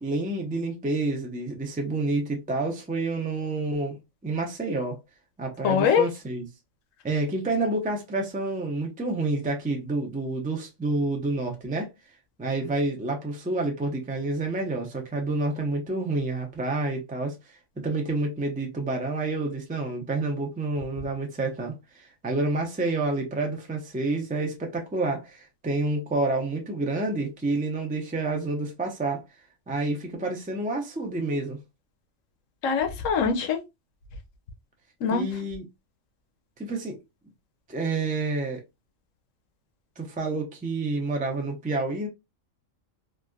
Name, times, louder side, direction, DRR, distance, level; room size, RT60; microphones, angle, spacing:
voice 1, 0.0-5.0 5.4-6.5 7.0-11.9 12.4-17.4 17.8-29.2 29.7-31.6 35.1-35.6 36.6-37.0 37.7-38.6 40.0-42.1, right 2 dB, 10° right, 0.4 m, -29 dB
voice 2, 5.6-6.1 32.6-33.6 35.0-35.2, left 6 dB, 80° left, 1.1 m, -23 dB
3.2 x 2.6 x 2.3 m
omnidirectional pair, 1.4 m